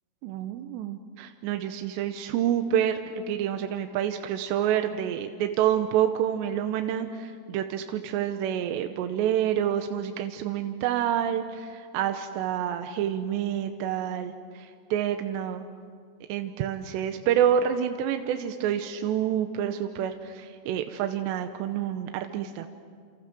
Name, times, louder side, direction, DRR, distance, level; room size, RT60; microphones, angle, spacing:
voice 1, 0.2-15.7 16.3-22.7, right 10 dB, 85° right, 6 dB, 3.1 m, -28 dB
29.5 x 28.5 x 6.2 m, 2.1 s
omnidirectional pair, 4.9 m